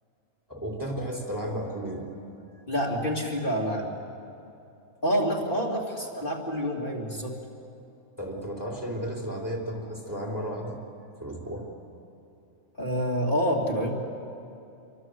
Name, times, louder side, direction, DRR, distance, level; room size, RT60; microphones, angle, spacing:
voice 1, 0.5-2.1 8.2-10.8 11.2-11.7, equal, 15° right, 0 dB, 3.4 m, -33 dB
voice 2, 2.7-3.9 5.0-7.4 12.8-13.9, equal, 40° left, -2 dB, 2.8 m, -27 dB
27.0 x 24.0 x 7.9 m, 2.8 s
omnidirectional pair, 1.5 m